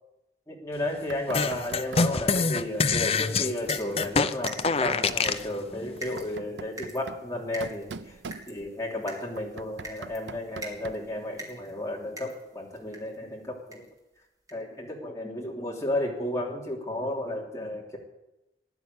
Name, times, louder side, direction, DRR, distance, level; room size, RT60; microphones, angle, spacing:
voice 1, 0.5-8.2 8.5-13.9 14.5-18.0, left 1 dB, 15° left, -2 dB, 3.1 m, -33 dB
Knock, 1.1-2.8 4.0-5.3 6.0-8.9 9.4-11.2, right 4 dB, 85° right, 0.6 m, -43 dB
sound 1, 1.3-5.5, left 4 dB, 35° left, 0.6 m, -25 dB
sound 2, 2.6-13.2 13.7-14.0 14.5-14.6 14.9-15.0, right 1 dB, 20° right, 2.8 m, -45 dB
15.5 x 11.0 x 8.3 m, 0.97 s
head